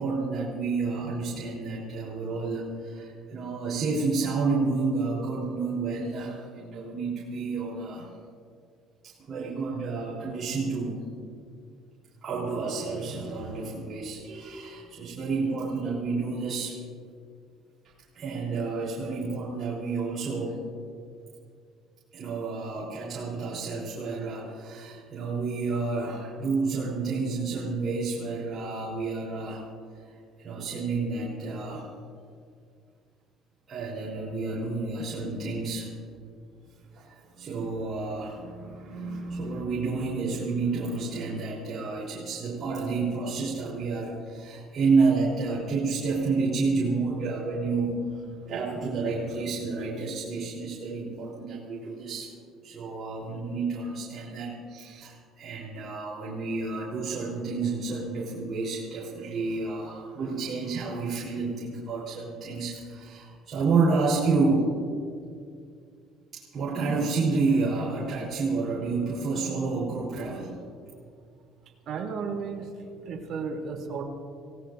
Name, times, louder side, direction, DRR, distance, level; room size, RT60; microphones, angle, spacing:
voice 1, 0.0-8.1 9.0-11.0 12.2-16.8 18.1-20.6 22.1-29.6 30.0-30.1 30.4-31.9 33.7-35.9 36.9-52.3 52.6-64.8 66.3-70.6, right 4 dB, 35° right, -8 dB, 3.7 m, -30 dB
voice 2, 71.9-72.7 73.0-74.0, right 5 dB, 50° right, 0 dB, 3.0 m, -33 dB
27.5 x 17.5 x 2.6 m, 2.3 s
cardioid pair, 140°, 0 cm